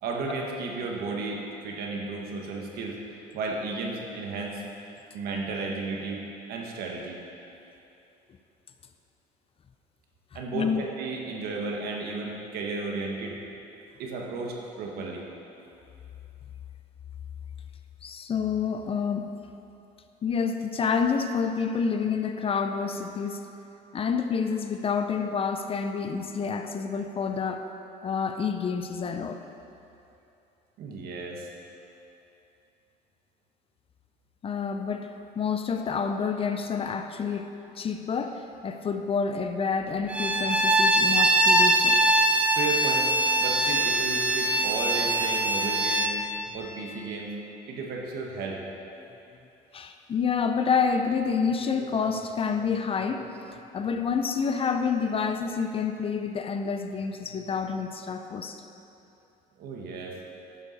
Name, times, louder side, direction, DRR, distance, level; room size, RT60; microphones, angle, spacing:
voice 1, 0.0-4.6 5.1-6.2 6.5-7.2 10.3-13.4 14.0-15.3 30.8-31.5 42.5-43.1 43.4-46.1 46.5-47.3 47.7-48.6 59.6-60.2, right 3 dB, 70° right, 0 dB, 1.5 m, -33 dB
voice 2, 10.5-10.9 18.0-19.3 20.2-23.5 23.9-27.7 28.0-29.4 34.4-42.0 49.7-58.6, left 6 dB, 35° left, 7 dB, 0.6 m, -28 dB
Bowed string instrument, 40.1-46.2, right 1 dB, 10° right, 0.7 m, -22 dB
11.0 x 7.1 x 4.2 m, 2.8 s
cardioid pair, 95°, 16 cm